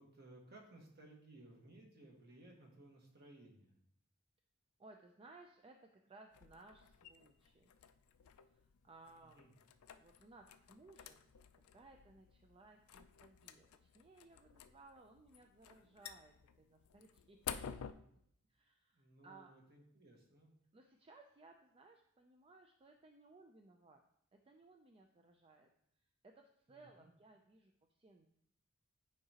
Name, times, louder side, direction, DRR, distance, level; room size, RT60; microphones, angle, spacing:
voice 1, 0.0-3.8 9.2-9.5 18.9-20.5 26.7-27.1, right 1 dB, 50° right, 0 dB, 1.5 m, -60 dB
voice 2, 4.8-7.7 8.8-9.5 10.0-11.3 11.7-17.7 18.5-19.5 20.7-24.0 24.3-25.7 26.2-27.7 28.0-28.3, right 3 dB, 25° right, 4 dB, 0.4 m, -62 dB
sound 1, 6.3-17.9, left 8 dB, 90° left, 0.4 m, -53 dB
9.5 x 4.8 x 2.9 m, 0.72 s
head